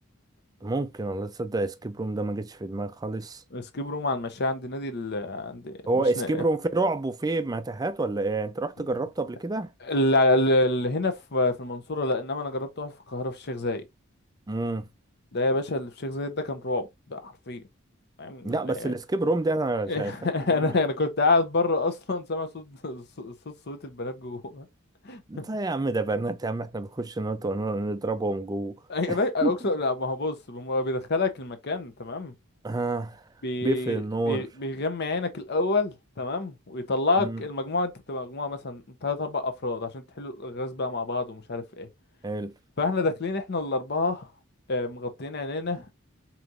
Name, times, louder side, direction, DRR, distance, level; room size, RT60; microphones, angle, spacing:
voice 1, 0.6-3.4 5.9-9.7 14.5-14.9 18.4-20.1 20.5-20.8 25.3-28.8 29.1-29.5 32.6-33.2 33.6-34.5 37.2-37.4 42.2-42.5, right 2 dB, 20° right, 0.4 m, -28 dB
voice 2, 3.5-5.8 6.2-6.4 9.8-13.8 15.3-17.6 18.2-18.9 19.9-24.7 25.0-25.5 28.9-32.3 33.4-41.9 42.8-44.3 44.7-45.8, left 2 dB, 50° left, 0.8 m, -28 dB
5.1 x 2.9 x 2.5 m
head